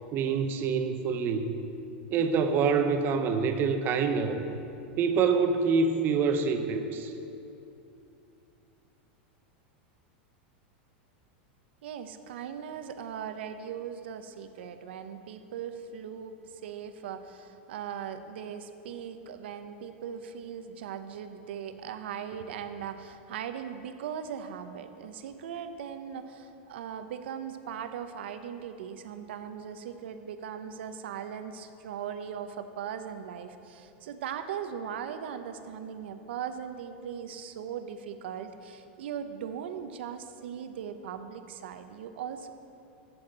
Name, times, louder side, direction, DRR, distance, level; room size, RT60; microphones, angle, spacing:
voice 1, 0.1-1.5 2.1-4.4 5.0-7.1, right 5 dB, 35° right, 7 dB, 0.8 m, -26 dB
voice 2, 11.8-42.5, right 8 dB, 80° right, 9 dB, 0.7 m, -39 dB
8.5 x 7.2 x 7.9 m, 2.7 s
supercardioid pair, 140°, 6 cm